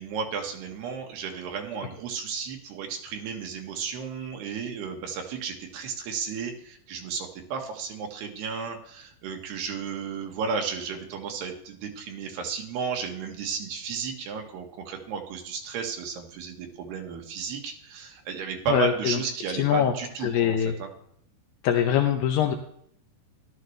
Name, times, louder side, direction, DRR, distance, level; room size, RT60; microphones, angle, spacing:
voice 1, 0.0-20.9, right 6 dB, 70° right, 3 dB, 3.4 m, -33 dB
voice 2, 18.7-19.2 19.6-19.9 20.2-20.7 21.6-22.5, left 9 dB, 75° left, 4 dB, 2.1 m, -23 dB
14.0 x 12.0 x 3.3 m, 0.67 s
omnidirectional pair, 5.0 m